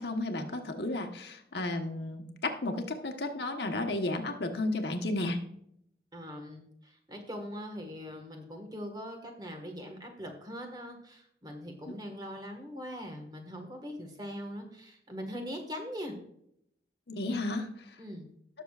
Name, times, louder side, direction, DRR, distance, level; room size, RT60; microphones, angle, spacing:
voice 1, 0.0-5.4 17.1-17.7, left 2 dB, 75° left, 4 dB, 1.2 m, -33 dB
voice 2, 6.1-16.1 18.0-18.3, equal, 25° right, 3 dB, 1.6 m, -41 dB
18.0 x 6.7 x 2.4 m, 0.74 s
head